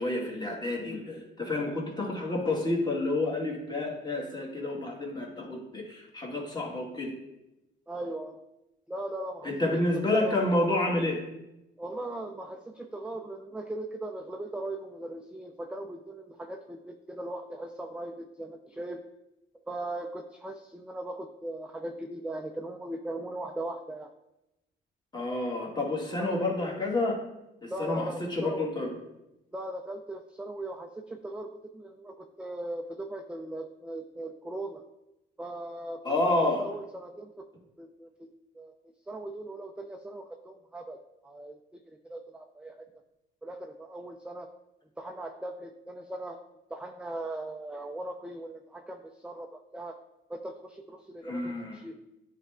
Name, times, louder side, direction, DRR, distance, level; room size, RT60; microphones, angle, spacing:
voice 1, 0.0-7.2 9.4-11.2 25.1-27.2 27.6-28.9 36.0-36.7 51.2-51.8, left 2 dB, 20° left, -2 dB, 1.9 m, -29 dB
voice 2, 7.9-8.4 8.9-9.5 9.9-10.4 11.8-19.0 19.7-24.1 26.2-26.5 27.7-28.7 29.5-34.8 35.4-37.5 37.8-38.3 38.5-38.7 39.1-42.9 43.4-44.5 45.0-46.4 46.7-50.0 50.3-51.9, right 1 dB, 5° right, 4 dB, 0.4 m, -39 dB
9.8 x 3.3 x 3.6 m, 0.92 s
cardioid pair, 90°, 20 cm